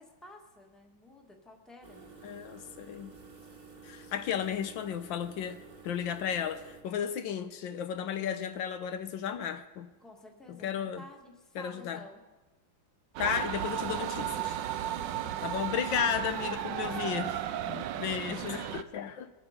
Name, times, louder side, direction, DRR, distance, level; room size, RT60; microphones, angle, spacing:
voice 1, 0.0-2.2 10.0-12.2 14.8-15.7 16.2-17.9, left 2 dB, ahead, 1 dB, 1.3 m, -52 dB
sound 1, 1.8-6.8, right 4 dB, 25° right, 1.4 m, -52 dB
voice 2, 2.2-3.2 3.8-5.6 5.8-9.9 10.5-11.0 11.5-12.0 13.2-14.6 15.4-17.3 17.7-19.3, left 8 dB, 80° left, 9 dB, 1.5 m, -34 dB
sound 2, 13.2-18.8, right 11 dB, 75° right, 1.3 m, -34 dB
23.0 x 8.4 x 5.1 m, 1.2 s
omnidirectional pair, 2.1 m